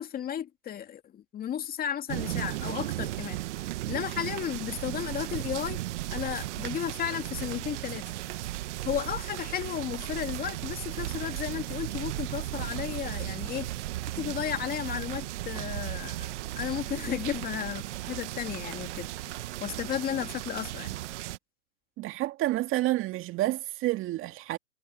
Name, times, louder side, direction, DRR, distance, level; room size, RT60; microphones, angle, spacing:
voice 1, 0.0-3.4 3.9-5.8 6.1-8.0 8.8-13.7 14.2-19.1 19.6-21.0, left 9 dB, 20° left, 2.5 m, -34 dB
sound 1, 2.1-21.4, right 16 dB, 45° right, 1.3 m, -35 dB
voice 2, 22.0-24.6, right 16 dB, 25° right, 2.3 m, -29 dB
hypercardioid pair, 130°, 47 cm